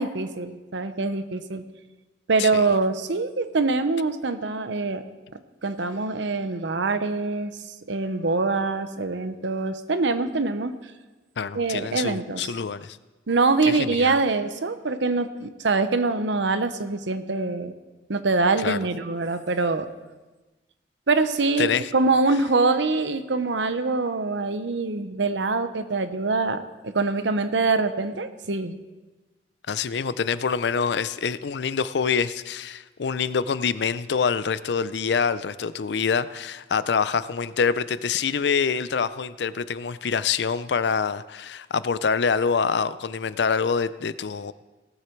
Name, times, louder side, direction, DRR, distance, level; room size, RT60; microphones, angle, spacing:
voice 1, 0.0-1.6 2.3-5.0 5.6-7.5 7.9-10.7 11.5-12.5 13.3-17.7 18.1-19.9 21.1-28.8, right 3 dB, 85° right, 10 dB, 0.8 m, -24 dB
voice 2, 11.4-13.0 13.6-14.1 18.6-18.8 21.6-21.9 29.7-44.5, left 6 dB, 70° left, 16 dB, 0.5 m, -26 dB
18.0 x 8.2 x 4.6 m, 1.2 s
head